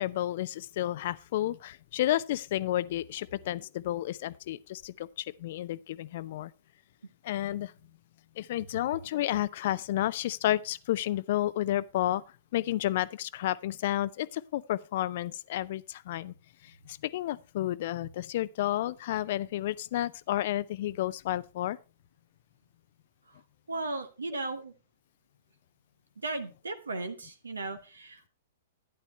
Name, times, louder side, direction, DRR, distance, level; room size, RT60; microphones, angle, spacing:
voice 1, 0.0-6.5 7.2-7.7 8.4-12.2 12.5-16.3 16.6-21.8, left 13 dB, 50° left, 0.5 m, -31 dB
voice 2, 23.7-24.7 26.2-28.3, right 2 dB, 75° right, 1.2 m, -36 dB
12.0 x 10.0 x 3.2 m
figure-of-eight pair, 105°, 0 cm